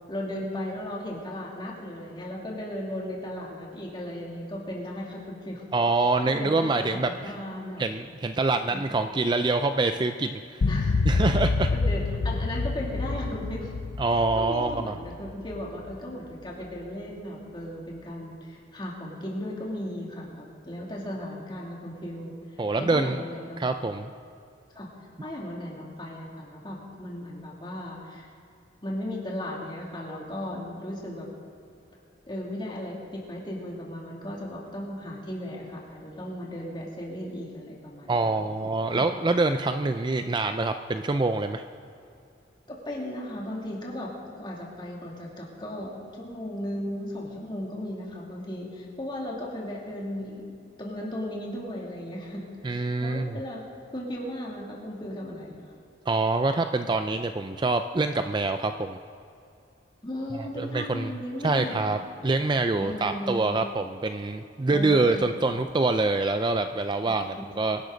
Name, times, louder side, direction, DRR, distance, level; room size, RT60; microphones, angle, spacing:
voice 1, 0.1-5.6 6.2-7.8 8.7-8.8 10.6-11.0 11.7-13.7 14.3-23.6 24.7-24.9 25.2-28.3 28.8-31.3 32.3-39.0 42.7-53.6 53.9-55.7 60.0-62.0 62.8-63.6 64.7-65.3 67.1-67.2, left 1 dB, 25° left, -3 dB, 2.8 m, -36 dB
voice 2, 5.7-7.1 7.8-10.6 11.1-11.7 14.0-15.0 22.6-23.2 23.6-24.1 38.1-41.7 52.6-53.4 56.1-59.0 60.6-61.1 61.4-67.8, right 3 dB, 25° right, 8 dB, 0.4 m, -25 dB
sound 1, 10.6-16.0, left 3 dB, 85° left, 0.5 m, -27 dB
23.5 x 11.5 x 4.0 m, 2.5 s
head